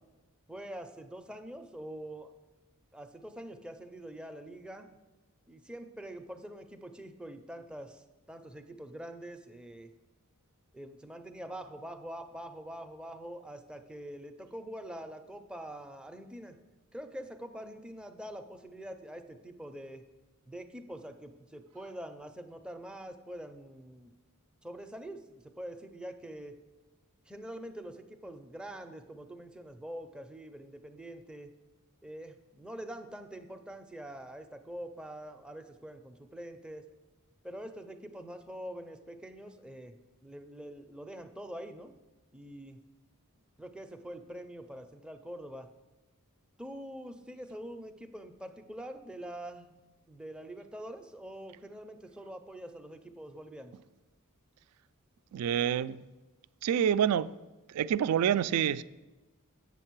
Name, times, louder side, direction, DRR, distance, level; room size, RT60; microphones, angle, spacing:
voice 1, 0.5-2.3 2.9-4.9 5.5-9.9 10.7-16.6 16.9-20.0 20.5-24.1 24.6-26.6 27.3-31.5 32.0-36.8 37.4-40.0 40.2-41.9 42.3-42.8 43.6-45.7 46.6-49.7 50.1-53.8, right 1 dB, 5° right, 0.5 m, -45 dB
voice 2, 55.3-56.0 56.6-57.3 57.7-58.8, right 9 dB, 75° right, 0.3 m, -27 dB
8.2 x 6.5 x 4.6 m
head